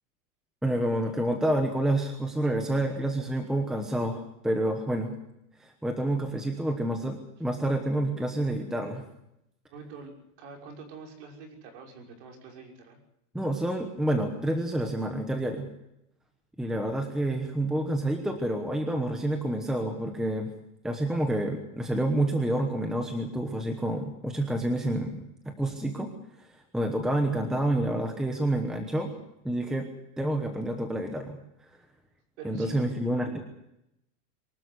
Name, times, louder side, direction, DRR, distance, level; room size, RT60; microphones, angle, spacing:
voice 1, 0.6-5.2 5.6-9.0 13.3-15.7 16.6-20.5 20.8-26.1 26.4-26.5 26.7-29.1 29.4-29.9 30.2-31.4 32.4-33.4, right 1 dB, ahead, 4 dB, 1.1 m, -28 dB
voice 2, 9.7-10.1 10.4-13.0 32.4-32.8, right 5 dB, 45° right, 2 dB, 6.1 m, -45 dB
24.0 x 13.0 x 9.7 m, 0.81 s
supercardioid pair, 175°, 46 cm